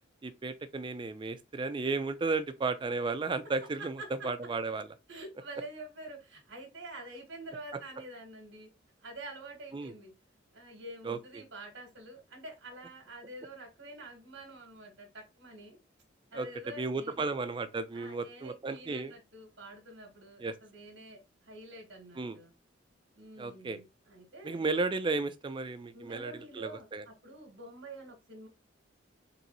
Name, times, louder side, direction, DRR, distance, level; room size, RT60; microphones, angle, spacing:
voice 1, 0.2-3.9 4.2-4.9 9.7-9.9 11.0-11.4 16.3-16.5 16.8-19.1 20.4-20.5 22.2-22.4 23.4-23.8 24.4-27.0, right 3 dB, 25° right, 0.3 m, -34 dB
voice 2, 5.1-8.7 9.0-10.1 10.5-15.8 16.3-17.3 17.9-22.5 23.1-24.6 25.9-28.5, right 1 dB, 65° right, 1.2 m, -47 dB
3.9 x 3.0 x 2.8 m
head